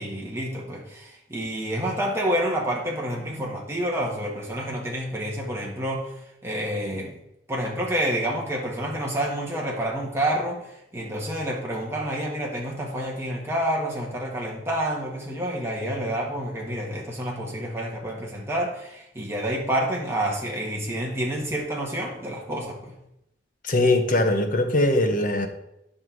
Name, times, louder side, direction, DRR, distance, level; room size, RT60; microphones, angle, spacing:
voice 1, 0.0-7.1 7.5-23.0, right 1 dB, 15° right, -2 dB, 2.0 m, -28 dB
voice 2, 23.6-25.5, left 2 dB, 50° left, 6 dB, 1.1 m, -21 dB
9.7 x 5.9 x 4.7 m, 0.83 s
head